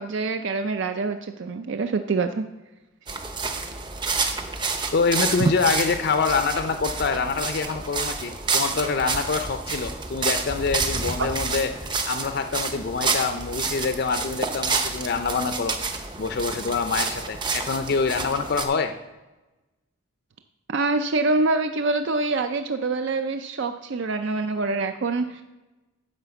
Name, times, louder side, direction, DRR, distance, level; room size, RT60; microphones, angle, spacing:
voice 1, 0.0-2.4 20.7-25.4, right 3 dB, 55° right, 8 dB, 0.4 m, -25 dB
sound 1, 3.1-18.6, right 4 dB, 20° right, 0.7 m, -29 dB
voice 2, 4.9-11.7 12.1-15.8 16.2-18.9, left 4 dB, 50° left, 8 dB, 0.5 m, -25 dB
10.5 x 4.3 x 6.9 m, 1.1 s
head